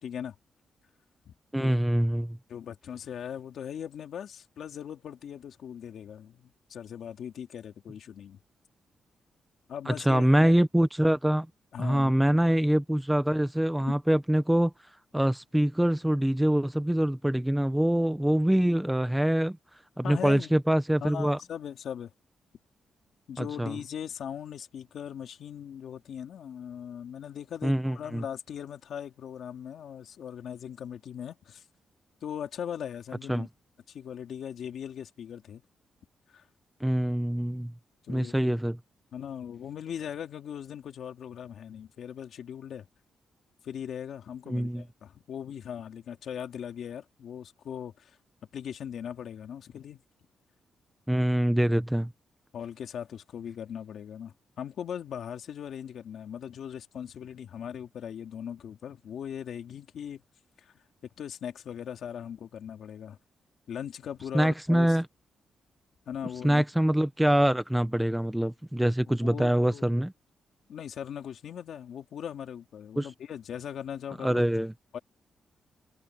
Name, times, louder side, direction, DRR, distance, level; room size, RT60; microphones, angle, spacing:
voice 1, 0.0-0.3 1.2-1.7 2.5-8.4 9.7-10.5 11.7-12.3 13.9-14.0 20.0-20.5 21.0-22.1 23.3-31.6 32.2-33.5 33.9-35.6 36.3-36.4 38.1-38.6 39.1-42.9 43.6-48.1 48.5-50.0 52.5-60.2 60.6-60.7 61.2-63.2 63.7-65.0 66.1-66.6 69.1-69.9 70.7-74.4 74.9-75.0, left 8 dB, 60° left, 2.9 m, -39 dB
voice 2, 1.5-2.4 9.9-11.5 11.8-14.7 15.1-19.6 20.0-21.4 23.4-23.8 27.6-28.2 33.3-33.5 36.8-37.7 38.1-38.8 44.5-44.8 51.1-52.1 64.3-65.1 66.4-70.1 73.0-73.1 74.2-74.7, right 1 dB, 5° right, 0.8 m, -24 dB
wide cardioid pair, 170°, 0 cm